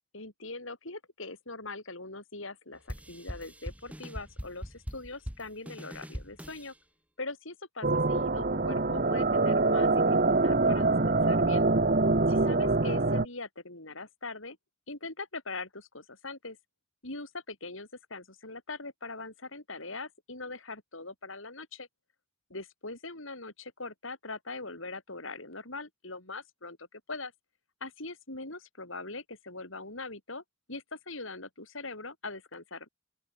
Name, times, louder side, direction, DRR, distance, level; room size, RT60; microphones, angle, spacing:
voice 1, 0.1-6.7 7.2-11.7 12.5-14.6 14.9-16.6 17.0-21.9 22.5-27.3 27.8-30.4 30.7-32.9, left 3 dB, 70° left, 7.7 m, -41 dB
sound 1, 2.9-6.7, equal, 5° right, 7.8 m, -42 dB
sound 2, 7.8-13.3, right 3 dB, 40° right, 1.1 m, -25 dB
open air
head